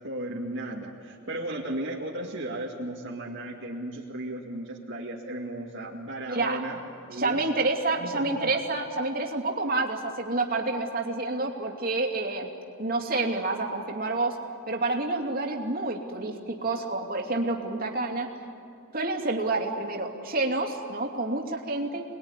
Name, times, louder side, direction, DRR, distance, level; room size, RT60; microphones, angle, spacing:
voice 1, 0.0-6.8 7.1-7.4 7.9-8.6, right 1 dB, 60° right, -3 dB, 2.1 m, -35 dB
voice 2, 6.3-6.6 7.2-12.5 12.8-14.4 14.7-18.3 18.9-22.0, right 2 dB, 45° right, 1 dB, 2.8 m, -28 dB
27.0 x 20.5 x 9.9 m, 2.6 s
head